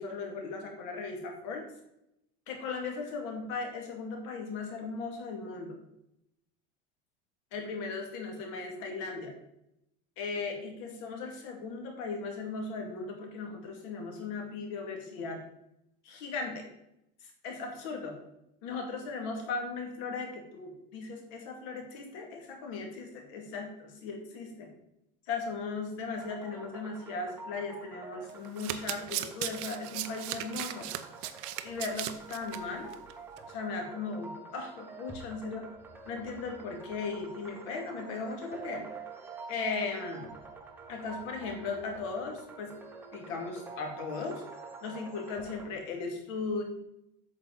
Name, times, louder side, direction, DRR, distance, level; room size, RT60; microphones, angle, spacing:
voice 1, 0.0-1.7 2.5-5.8 7.5-9.3 10.2-15.4 16.0-16.6 17.4-18.2 18.6-24.7 25.3-30.9 31.6-32.9 33.5-35.7 36.0-38.9 39.5-40.3 40.9-42.7 43.1-44.4 44.8-46.6, left 4 dB, 55° left, 2 dB, 2.3 m, -37 dB
sound 1, 26.2-45.7, right 4 dB, 10° right, 0.9 m, -47 dB
Domestic sounds home sounds, 28.3-32.6 32.9-33.1 33.4-33.5, right 13 dB, 50° right, 0.6 m, -37 dB
8.6 x 6.9 x 4.1 m, 0.82 s
cardioid pair, 180°, 20 cm